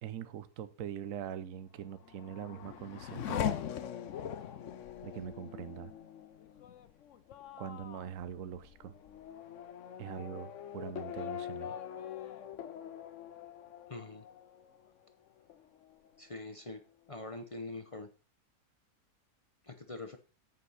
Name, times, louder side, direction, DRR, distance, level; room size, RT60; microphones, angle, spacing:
voice 1, 0.0-3.6 5.0-5.9 7.6-8.9 10.0-11.8, right 9 dB, 65° right, 1.1 m, -43 dB
Race car auto racing / Accelerating revving vroom, 1.9-15.1 15.5-16.2, left 9 dB, 60° left, 1.0 m, -42 dB
voice 2, 13.9-14.2 16.2-16.8 17.1-18.1 19.6-20.2, left 2 dB, 35° left, 0.6 m, -43 dB
8.2 x 5.4 x 6.4 m
omnidirectional pair, 1.6 m